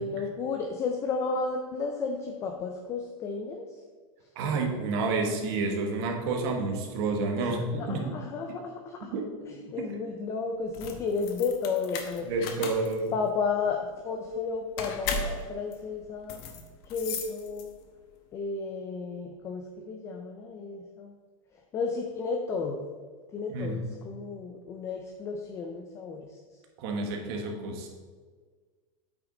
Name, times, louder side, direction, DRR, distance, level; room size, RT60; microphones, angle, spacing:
voice 1, 0.0-3.6 7.4-9.1 9.5-12.3 13.1-16.4 16.9-17.7 18.3-21.1 21.7-22.9 23.3-26.2, left 4 dB, 15° left, 3 dB, 0.4 m, -33 dB
voice 2, 4.3-8.1 9.1-9.3 9.7-9.9 12.2-13.1 23.5-23.8 26.8-27.9, right 3 dB, 45° right, 2 dB, 1.3 m, -30 dB
sound 1, 10.6-18.0, left 4 dB, 45° left, 1.0 m, -37 dB
8.4 x 6.0 x 3.8 m, 1.5 s
supercardioid pair, 170°, 18 cm